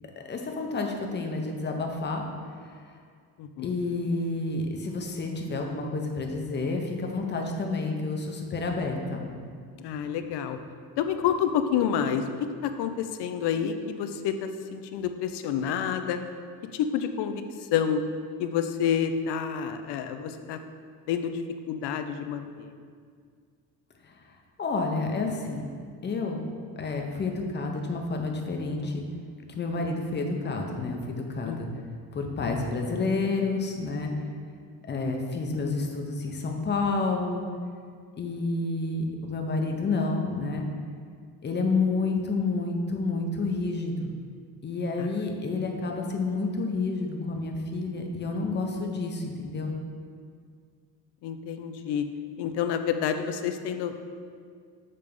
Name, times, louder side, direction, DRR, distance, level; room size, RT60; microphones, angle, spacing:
voice 1, 0.2-2.2 3.6-9.3 24.6-25.7 26.0-26.4 26.8-29.0 29.5-31.7 32.1-34.1 34.9-37.4 38.2-40.7 41.4-44.1 44.6-49.7, left 3 dB, 25° left, 2 dB, 0.6 m, -29 dB
voice 2, 3.4-3.7 9.8-10.6 11.0-16.2 16.7-17.4 17.7-18.0 18.4-20.6 21.1-21.4 21.7-22.7 31.4-31.8 45.0-45.2 51.2-52.1 52.4-54.1, left 8 dB, 85° left, 8 dB, 0.6 m, -29 dB
6.8 x 3.3 x 5.2 m, 2.1 s
cardioid pair, 160°, 40 cm